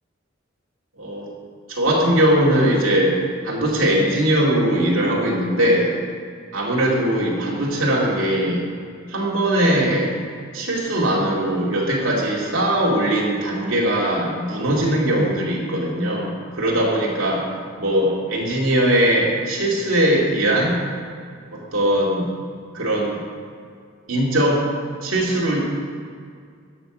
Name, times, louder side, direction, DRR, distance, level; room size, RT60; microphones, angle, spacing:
voice 1, 1.7-3.2 3.4-5.9 6.5-8.6 9.1-10.1 10.5-17.4 17.8-20.8 21.5-22.3 22.7-23.2 24.1-24.6 25.0-25.8, right 1 dB, 85° right, -4 dB, 2.4 m, -20 dB
12.5 x 6.0 x 6.1 m, 2.2 s
head